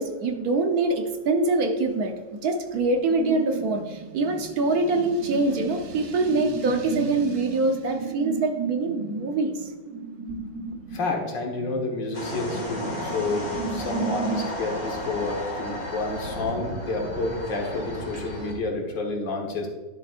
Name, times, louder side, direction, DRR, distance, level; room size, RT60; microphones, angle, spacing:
voice 1, 0.0-2.1 2.4-9.7, right 2 dB, 60° right, 5 dB, 1.3 m, -24 dB
sound 1, 3.1-14.5, right 5 dB, 35° right, 1.1 m, -35 dB
voice 2, 10.9-19.7, left 3 dB, 85° left, 1 dB, 2.2 m, -30 dB
sound 2, 12.1-18.5, left 1 dB, 55° left, 2.4 m, -33 dB
11.0 x 7.2 x 2.5 m, 1.3 s
omnidirectional pair, 1.9 m